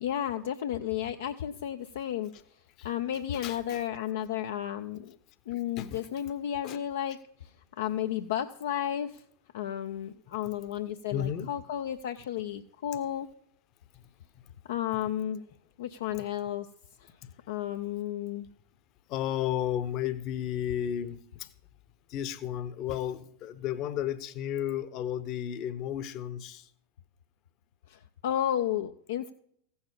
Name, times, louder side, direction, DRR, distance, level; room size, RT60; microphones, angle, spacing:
voice 1, 0.0-2.3 2.8-5.2 5.5-9.2 9.5-13.3 14.7-15.4 15.8-16.7 17.0-17.1 17.5-18.5 27.9-29.3, left 11 dB, 60° left, 0.5 m, -33 dB
voice 2, 3.4-3.8 5.5-6.1 6.6-6.8 11.1-11.5 13.9-14.1 14.3-14.5 16.2-16.3 17.2-17.3 19.1-21.5 22.1-26.7, left 10 dB, 40° left, 0.9 m, -33 dB
15.5 x 7.1 x 5.5 m
figure-of-eight pair, 90°, 0 cm